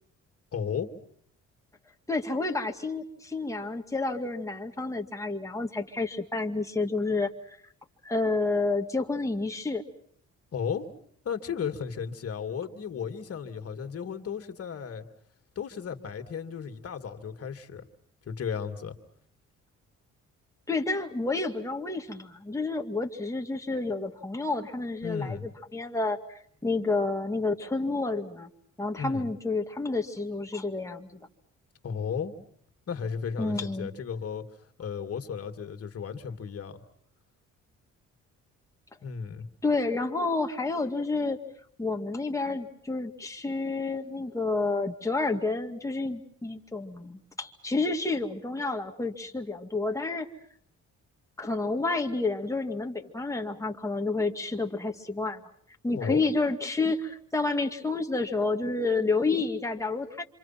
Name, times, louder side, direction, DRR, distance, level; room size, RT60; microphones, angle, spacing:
voice 1, 0.5-0.9 10.5-10.9 11.2-15.1 15.6-17.9 18.3-19.0 25.0-25.5 29.0-29.3 31.8-32.3 32.9-34.4 34.8-36.8 39.0-39.5 55.9-56.2, left 7 dB, 50° left, 6 dB, 2.5 m, -34 dB
voice 2, 2.1-7.6 8.0-9.8 20.7-28.5 28.8-31.2 33.4-33.9 39.6-41.4 41.8-50.3 51.4-55.4 55.8-60.2, left 3 dB, 10° left, 2 dB, 2.3 m, -30 dB
27.0 x 26.5 x 5.9 m, 0.63 s
cardioid pair, 90°, 30 cm